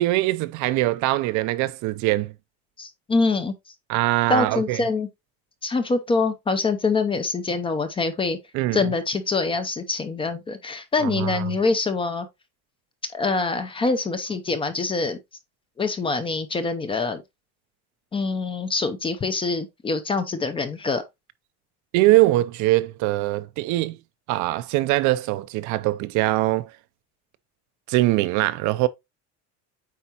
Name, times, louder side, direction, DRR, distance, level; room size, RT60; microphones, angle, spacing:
voice 1, 0.0-2.3 3.9-4.8 8.5-8.8 11.0-11.4 21.9-24.0 24.3-26.7 27.9-28.9, right 17 dB, 55° right, 0.5 m, -22 dB
voice 2, 2.8-3.5 4.3-5.1 5.6-8.4 8.7-12.3 13.1-15.2 15.8-17.2 18.1-21.0, left 3 dB, 15° left, 0.6 m, -25 dB
8.4 x 4.6 x 2.8 m
cardioid pair, 170°, 36 cm